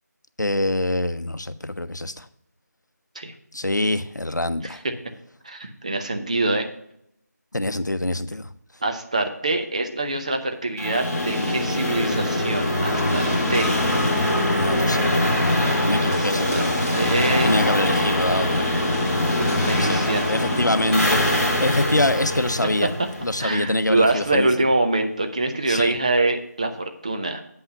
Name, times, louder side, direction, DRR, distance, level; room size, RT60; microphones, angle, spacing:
voice 1, 0.4-2.3 3.5-4.8 7.5-8.5 14.5-15.0 15.9-16.7 17.4-18.7 19.8-20.0 20.3-22.9 23.2-24.5 25.7-26.0, left 1 dB, 85° left, 12 dB, 0.7 m, -24 dB
voice 2, 5.4-6.7 8.8-13.8 16.0-16.6 16.9-17.5 19.4-20.2 23.4-27.4, right 2 dB, 25° right, 5 dB, 0.6 m, -24 dB
sound 1, 10.8-23.6, left 1 dB, 5° left, 1.4 m, -23 dB
8.2 x 5.7 x 5.4 m, 0.73 s
figure-of-eight pair, 165°, 9 cm